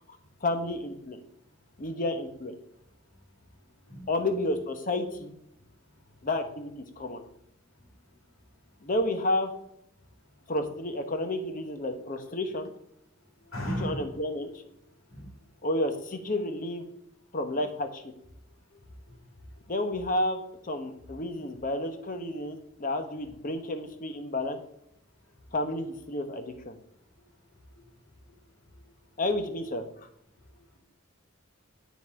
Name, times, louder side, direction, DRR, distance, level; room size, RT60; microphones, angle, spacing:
voice 1, 0.4-1.2 1.8-2.6 4.1-5.3 6.2-7.2 8.8-9.5 10.5-12.7 13.8-14.5 15.6-16.8 17.3-18.0 19.7-24.6 25.5-26.8 29.2-29.8, left 1 dB, 40° left, 7 dB, 1.0 m, -31 dB
voice 2, 13.5-14.2 15.1-15.2, equal, 75° left, 1 dB, 2.4 m, -33 dB
10.5 x 4.1 x 4.8 m, 0.75 s
head